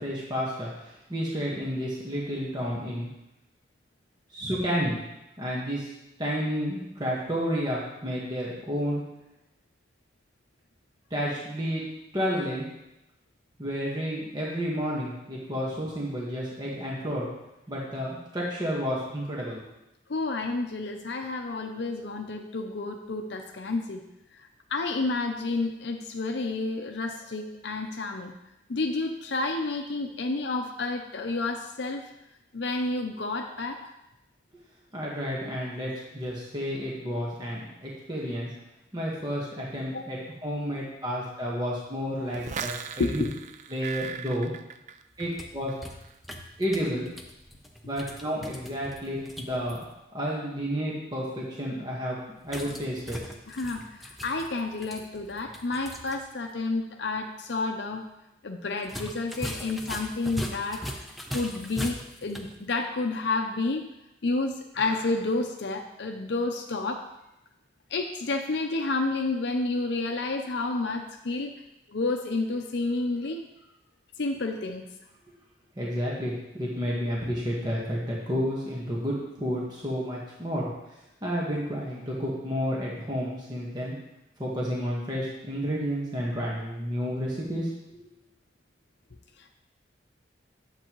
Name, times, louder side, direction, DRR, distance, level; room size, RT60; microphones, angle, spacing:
voice 1, 0.0-3.1 4.3-5.0 5.4-5.9 6.2-9.0 11.1-11.8 12.1-12.6 13.6-17.3 17.7-19.6 34.9-38.5 38.9-43.2 43.7-44.5 45.2-45.7 46.6-47.1 47.8-49.9 50.1-52.2 52.4-53.2 75.8-80.7 81.2-83.9 84.4-88.0, equal, 25° right, -5 dB, 1.4 m, -31 dB
voice 2, 20.1-24.0 24.7-28.3 28.7-32.1 32.5-33.8 39.9-40.0 43.0-43.3 53.5-58.0 58.4-60.8 61.3-63.8 64.2-67.0 67.9-71.5 71.9-73.4 74.2-74.8, left 3 dB, 65° left, 4 dB, 0.6 m, -30 dB
sound 1, 42.3-45.4 45.7-46.1, right 7 dB, 40° right, 0.4 m, -38 dB
sound 2, 45.1-49.8 52.4-56.2 56.5-56.6 58.8-62.6, equal, ahead, 0.7 m, -40 dB
10.5 x 7.5 x 3.1 m, 0.90 s
head